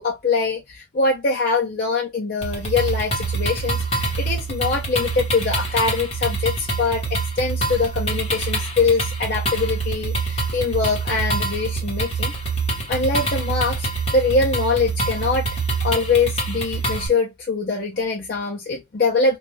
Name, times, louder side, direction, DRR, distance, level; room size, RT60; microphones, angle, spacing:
voice 1, 0.0-12.3 12.9-13.9 14.1-15.5 15.8-19.4, left 4 dB, 50° left, 0.5 m, -23 dB
sound 1, 2.4-17.1, right 3 dB, 30° left, 1.0 m, -25 dB
2.5 x 2.2 x 3.0 m
head